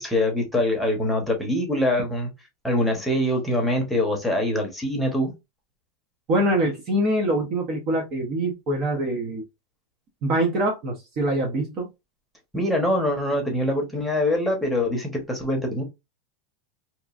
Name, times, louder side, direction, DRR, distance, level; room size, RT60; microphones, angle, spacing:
voice 1, 0.0-2.3 2.6-5.3 12.5-15.8, left 1 dB, ahead, 0.9 m, -24 dB
voice 2, 6.3-9.4 10.2-11.9, right 1 dB, 40° right, 0.7 m, -24 dB
2.9 x 2.4 x 2.4 m
supercardioid pair, 155°, 0 cm